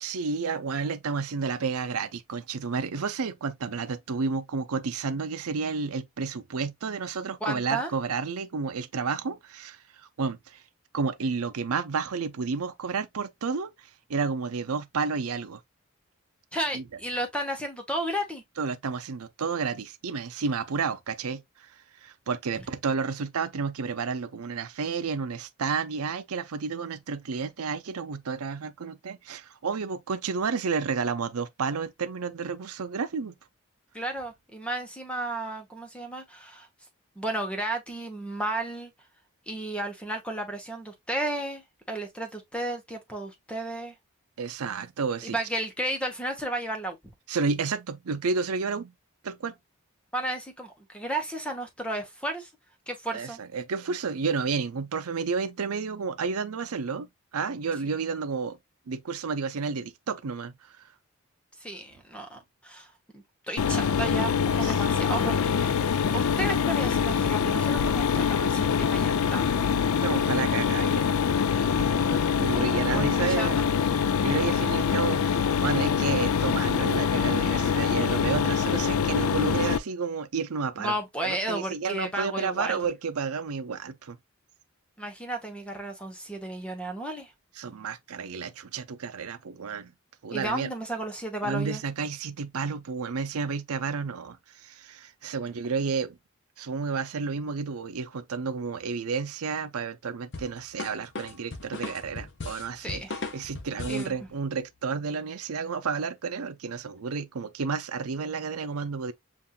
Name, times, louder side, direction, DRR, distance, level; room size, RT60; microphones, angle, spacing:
voice 1, 0.0-10.6 10.9-15.6 16.7-16.8 18.6-21.7 22.0-33.3 44.4-45.4 47.3-48.9 49.2-49.6 53.1-58.6 58.9-60.8 64.6-64.8 70.0-71.1 71.8-73.6 74.2-84.2 87.6-89.9 90.2-90.7 91.4-96.2 96.6-103.0 103.3-109.1, right 5 dB, 90° right, 0.6 m, -31 dB
voice 2, 7.4-7.9 16.5-18.4 33.9-36.7 37.2-38.9 39.5-43.9 45.2-47.0 50.1-52.5 52.9-53.4 61.6-62.9 63.1-69.6 72.5-73.7 80.8-82.8 85.0-87.3 90.3-91.8 102.8-103.1 103.9-104.1, right 1 dB, 5° left, 0.9 m, -33 dB
Mechanisms, 63.6-79.8, left 7 dB, 80° left, 0.4 m, -24 dB
sound 1, 100.3-104.1, left 3 dB, 55° left, 0.8 m, -37 dB
7.1 x 2.6 x 2.3 m
head